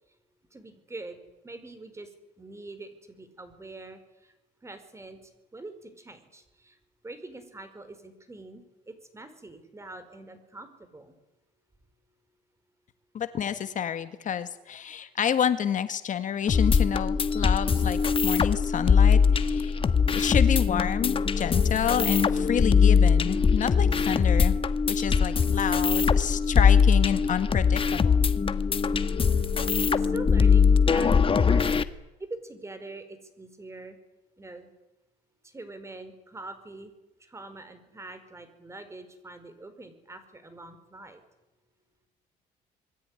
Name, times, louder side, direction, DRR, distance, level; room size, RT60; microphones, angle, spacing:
voice 1, 0.5-1.2 1.4-2.1 2.4-4.3 4.6-6.8 7.0-11.1 28.9-29.2 29.9-31.7 32.2-34.0 34.4-34.7 35.4-36.9 37.2-41.2, right 2 dB, 15° right, 10 dB, 5.0 m, -44 dB
voice 2, 13.1-19.8 20.1-24.6 24.9-28.3, left 8 dB, 50° left, 10 dB, 1.8 m, -29 dB
sound 1, 16.5-31.8, left 6 dB, 30° left, 1.6 m, -22 dB
27.0 x 21.5 x 9.9 m, 0.98 s
cardioid pair, 110°, 17 cm